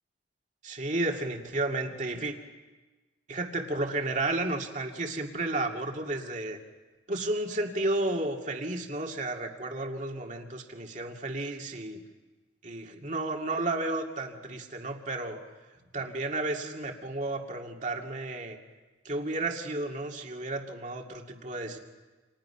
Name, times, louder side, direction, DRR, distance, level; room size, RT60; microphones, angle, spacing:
voice 1, 0.6-2.4 3.3-6.6 7.1-12.0 12.6-15.4 15.9-18.6 19.0-21.8, right 2 dB, 40° right, 2 dB, 2.3 m, -32 dB
29.5 x 27.5 x 5.8 m, 1.2 s
head